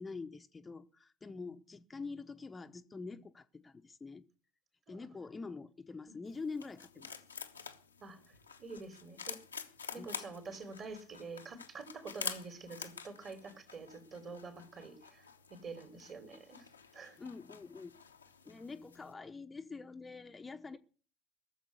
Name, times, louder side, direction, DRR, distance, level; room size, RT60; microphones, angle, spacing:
voice 1, 0.0-4.2 4.9-7.2 10.0-10.1 15.9-16.0 17.2-18.0 18.4-20.8, left 4 dB, 20° left, 0.9 m, -45 dB
sound 1, 6.3-19.1, left 6 dB, 90° left, 1.0 m, -48 dB
voice 2, 8.0-9.4 9.9-17.2, right 4 dB, 40° right, 3.5 m, -48 dB
17.5 x 7.3 x 8.2 m
figure-of-eight pair, 65°, 0 cm